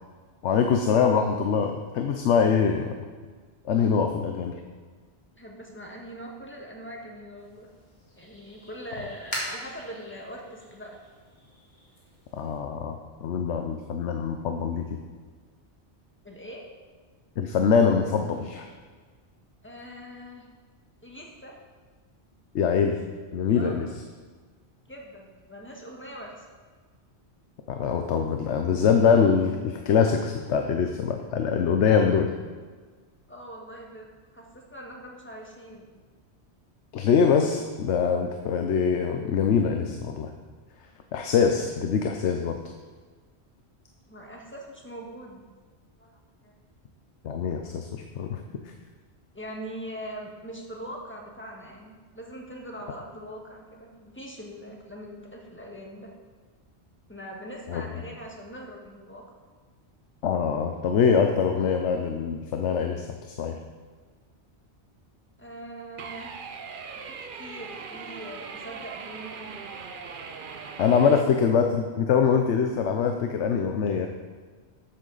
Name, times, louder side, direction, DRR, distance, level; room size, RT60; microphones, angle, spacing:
voice 1, 0.4-2.9 3.6-4.6 12.3-15.0 17.4-18.7 22.5-23.0 23.3-23.9 27.7-32.3 36.9-40.3 41.1-42.6 47.2-48.4 57.7-57.8 60.2-63.6 70.8-74.1, left 6 dB, 85° left, 4 dB, 1.0 m, -23 dB
voice 2, 5.4-7.7 8.2-11.0 16.2-16.6 19.6-20.4 21.0-21.5 23.5-23.8 24.9-26.5 33.3-35.9 44.1-45.4 46.0-46.5 49.3-56.1 57.1-59.2 65.4-66.4 67.0-69.5 70.9-71.2, equal, 10° left, -1 dB, 1.5 m, -42 dB
sound 1, 7.4-12.6, equal, 40° left, 2.5 m, -41 dB
sound 2, 66.0-71.2, right 5 dB, 55° right, 0.8 m, -40 dB
12.0 x 8.1 x 4.0 m, 1.5 s
omnidirectional pair, 1.1 m